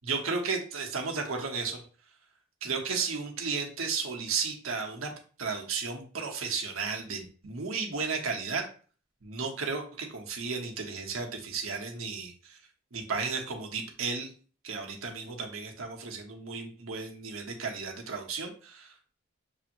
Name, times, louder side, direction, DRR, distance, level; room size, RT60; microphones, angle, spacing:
voice 1, 0.0-1.8 2.6-5.1 5.4-8.6 9.2-12.6 12.9-14.3 14.6-19.1, right 4 dB, 90° right, 2 dB, 1.0 m, -34 dB
6.6 x 2.9 x 2.6 m, 0.40 s
head